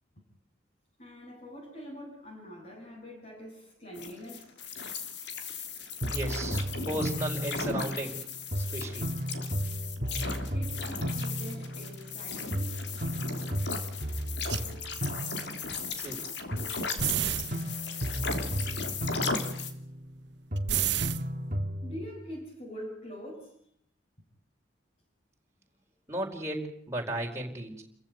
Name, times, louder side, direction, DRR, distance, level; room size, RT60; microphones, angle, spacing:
voice 1, 1.0-4.6 10.5-12.8 21.8-23.6, equal, 40° left, 7.7 m, -44 dB
sound 1, 3.9-19.7, left 4 dB, 65° left, 3.3 m, -36 dB
sound 2, 6.0-8.2 8.5-12.2 12.5-16.2 16.5-20.2 20.5-22.1, equal, 45° right, 1.9 m, -34 dB
voice 2, 6.1-8.3 8.6-9.1 16.0-16.3 26.1-27.8, right 1 dB, 15° right, 4.7 m, -35 dB
sound 3, 14.5-14.6 15.7-15.9 16.1-16.2 16.7-17.6 18.3-18.5 20.6-21.2, right 11 dB, 65° right, 1.1 m, -29 dB
29.5 x 15.0 x 9.5 m
head